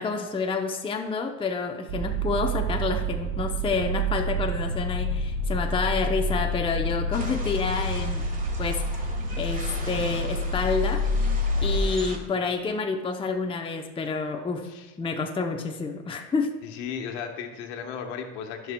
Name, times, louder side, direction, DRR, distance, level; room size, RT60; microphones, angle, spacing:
voice 1, 0.0-8.2 8.6-9.1 9.4-11.0 11.6-14.7 15.0-16.6, left 4 dB, 15° left, 4 dB, 0.6 m, -29 dB
sound 1, 1.9-11.8, equal, 60° right, 1.4 m, -28 dB
sound 2, 7.1-12.2, right 2 dB, 25° right, 1.5 m, -41 dB
voice 2, 16.6-18.7, left 7 dB, 80° left, 3 dB, 1.2 m, -36 dB
14.5 x 6.0 x 2.2 m, 1.2 s
supercardioid pair, 100°, 33 cm